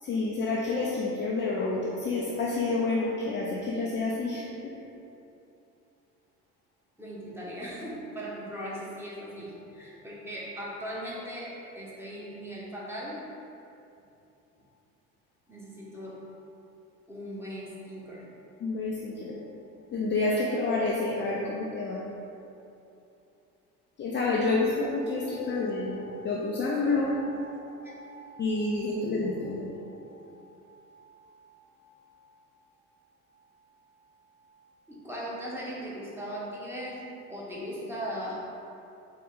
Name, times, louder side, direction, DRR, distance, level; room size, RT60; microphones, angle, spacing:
voice 1, 0.0-4.5 18.6-19.4 19.9-22.0 24.0-27.1 28.4-29.9, left 3 dB, 25° left, -4 dB, 0.5 m, -29 dB
voice 2, 7.0-13.2 15.5-16.2 17.1-18.3 24.4-26.4 26.7-32.2 34.9-37.0 37.3-38.4, equal, 5° right, -7 dB, 1.1 m, -40 dB
4.1 x 3.0 x 3.8 m, 2.7 s
figure-of-eight pair, 55°, 46 cm